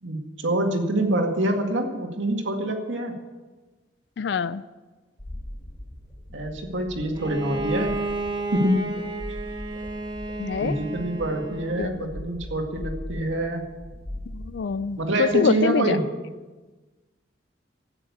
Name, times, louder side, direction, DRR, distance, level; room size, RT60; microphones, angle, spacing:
voice 1, 0.0-3.3 6.3-7.9 8.5-9.0 10.6-13.7 15.0-16.1, right 1 dB, 85° right, 3 dB, 2.1 m, -26 dB
voice 2, 4.2-4.6 10.4-10.8 11.8-11.9 14.3-16.0, left 6 dB, 65° left, 15 dB, 0.4 m, -25 dB
sound 1, 5.2-15.4, left 1 dB, 25° left, 3.2 m, -40 dB
Bowed string instrument, 7.2-11.9, right 2 dB, 25° right, 1.2 m, -32 dB
13.0 x 9.1 x 8.5 m, 1.3 s
head